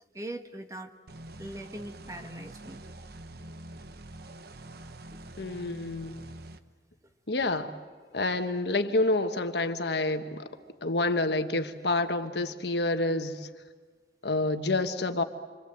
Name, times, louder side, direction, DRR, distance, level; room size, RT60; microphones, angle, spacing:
voice 1, 0.1-0.9 1.4-2.8, right 1 dB, 20° right, 6 dB, 1.5 m, -40 dB
sound 1, 1.1-6.6, right 1 dB, 60° right, 1.0 m, -45 dB
voice 2, 5.4-6.2 7.3-7.7 8.1-10.4 10.8-13.5 14.2-15.2, left 2 dB, 65° left, 7 dB, 1.4 m, -28 dB
27.5 x 26.0 x 7.8 m, 1.5 s
head